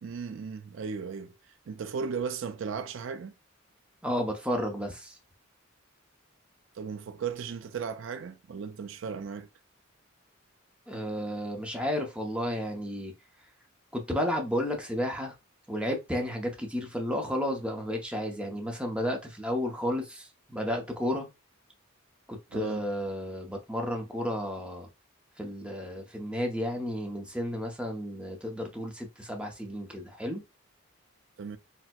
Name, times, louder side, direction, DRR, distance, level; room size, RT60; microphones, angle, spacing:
voice 1, 0.0-3.3 6.7-9.5 22.5-22.9 31.4-31.6, right 6 dB, 65° right, 0.4 m, -36 dB
voice 2, 4.0-5.2 10.9-13.1 13.9-15.3 15.7-21.3 22.3-24.9 25.4-30.4, equal, 5° right, 0.6 m, -32 dB
4.2 x 2.1 x 2.2 m
head